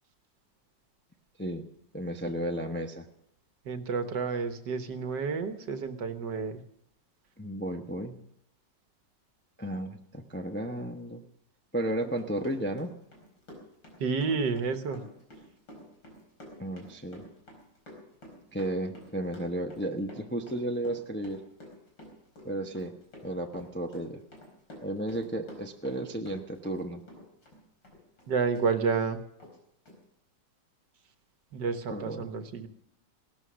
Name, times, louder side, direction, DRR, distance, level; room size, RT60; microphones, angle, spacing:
voice 1, 1.4-3.1 7.4-8.2 9.6-11.2 11.7-12.9 16.6-17.2 18.5-21.4 22.4-22.9 23.2-24.2 24.8-27.0 31.9-32.3, right 1 dB, 10° left, 3 dB, 0.7 m, -33 dB
voice 2, 3.7-6.6 14.0-15.0 28.3-29.2 31.5-32.7, right 5 dB, 70° right, 9 dB, 1.8 m, -30 dB
Run, 12.0-26.8 27.1-28.7 29.0-29.1 29.4-29.6 29.9-30.0, left 1 dB, 85° left, 5.4 m, -49 dB
18.0 x 13.0 x 6.3 m, 0.76 s
omnidirectional pair, 2.0 m